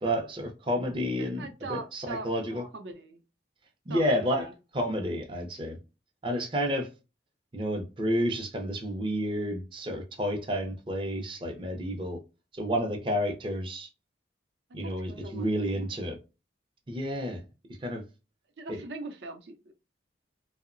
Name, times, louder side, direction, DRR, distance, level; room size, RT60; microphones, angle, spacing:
voice 1, 0.0-2.7 3.9-5.8 6.2-6.9 7.5-12.2 12.6-13.9 14.7-16.2 16.9-17.4 17.8-18.0 18.7-18.8, equal, 25° right, 0.4 m, -30 dB
voice 2, 1.2-3.2 3.9-4.5 14.8-15.5 15.7-15.8 18.6-19.7, right 3 dB, 70° right, 0.6 m, -41 dB
2.8 x 2.0 x 2.4 m
head